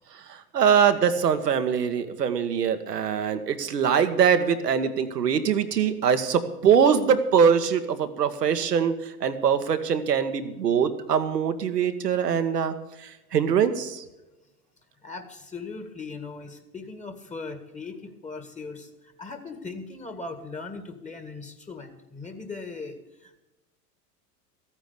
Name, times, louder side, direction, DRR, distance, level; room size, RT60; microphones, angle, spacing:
voice 1, 0.1-14.0, right 7 dB, 90° right, 9 dB, 1.5 m, -23 dB
voice 2, 15.0-23.4, left 3 dB, 15° left, 7 dB, 1.9 m, -39 dB
14.0 x 9.0 x 6.8 m, 0.98 s
hypercardioid pair, 95°, 47 cm